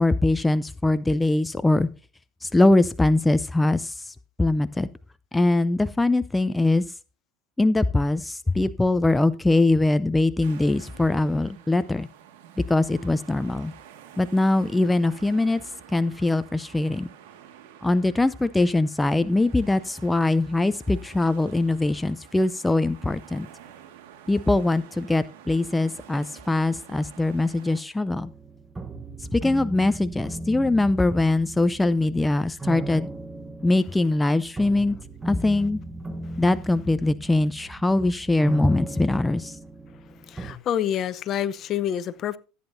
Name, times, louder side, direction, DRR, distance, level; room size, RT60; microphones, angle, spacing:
voice 1, 0.0-1.9 2.4-4.9 5.3-6.8 7.6-12.1 12.7-13.7 14.2-15.6 15.9-17.1 17.8-23.5 24.3-28.3 29.3-33.1 33.6-35.0 35.2-35.8 36.4-39.6, left 2 dB, 10° left, 0.5 m, -22 dB
sound 1, 10.4-27.8, right 10 dB, 80° right, 1.8 m, -49 dB
sound 2, 28.1-40.5, right 2 dB, 15° right, 1.1 m, -37 dB
voice 2, 40.2-42.4, left 10 dB, 45° left, 0.7 m, -27 dB
14.5 x 8.8 x 2.7 m
supercardioid pair, 95°, 0 cm